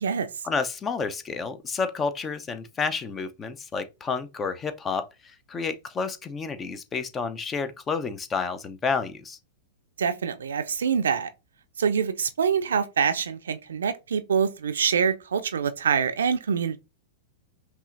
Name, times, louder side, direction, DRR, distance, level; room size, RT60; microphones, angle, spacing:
voice 1, 0.4-9.4, left 5 dB, 25° left, 0.5 m, -30 dB
voice 2, 10.0-11.3 11.8-16.8, right 6 dB, 75° right, 0.4 m, -25 dB
5.5 x 2.4 x 2.5 m
figure-of-eight pair, 100°, 0 cm